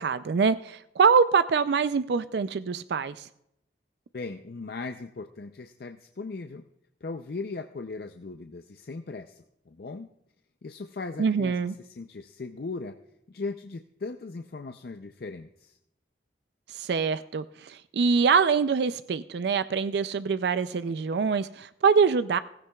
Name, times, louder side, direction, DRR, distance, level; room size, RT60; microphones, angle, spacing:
voice 1, 0.0-3.3 11.2-11.7 16.7-22.4, right 5 dB, 70° right, 13 dB, 0.4 m, -24 dB
voice 2, 4.1-6.6 7.0-10.1 10.6-13.0 13.3-15.8, left 3 dB, 60° left, 7 dB, 0.5 m, -38 dB
16.5 x 15.5 x 2.3 m, 0.80 s
head